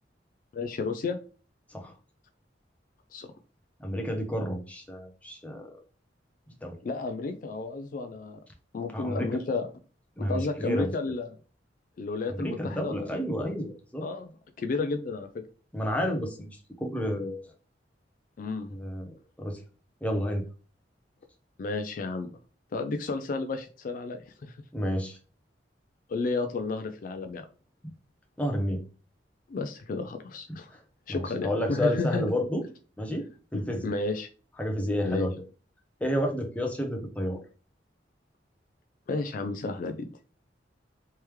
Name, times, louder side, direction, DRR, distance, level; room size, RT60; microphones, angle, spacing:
voice 1, 0.5-1.2 3.1-3.3 6.8-8.4 8.7-9.7 10.2-11.3 12.0-13.2 14.0-14.3 14.6-15.3 18.4-18.8 21.6-22.3 22.7-24.6 26.1-27.4 29.5-30.7 31.1-32.2 33.8-34.3 35.0-35.3 39.1-40.1, left 3 dB, 50° left, 7 dB, 0.3 m, -32 dB
voice 2, 3.8-5.7 6.6-6.8 8.9-9.3 10.2-10.9 12.3-14.1 15.7-16.5 16.8-17.5 18.7-19.6 20.0-20.4 24.7-25.2 28.4-28.8 30.7-30.8 31.1-32.6 33.0-33.3 33.5-33.9 34.6-35.3 36.0-37.4, equal, 10° left, 2 dB, 0.7 m, -30 dB
3.4 x 3.2 x 3.0 m, 0.37 s
head